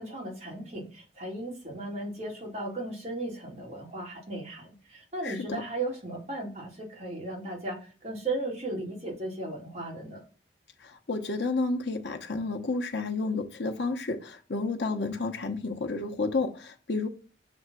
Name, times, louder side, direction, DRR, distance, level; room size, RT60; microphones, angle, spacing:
voice 1, 0.0-10.2, right 2 dB, 35° right, 2.3 m, -36 dB
voice 2, 5.2-5.6 10.8-17.1, left 3 dB, 75° left, 0.9 m, -31 dB
6.9 x 3.3 x 6.0 m
head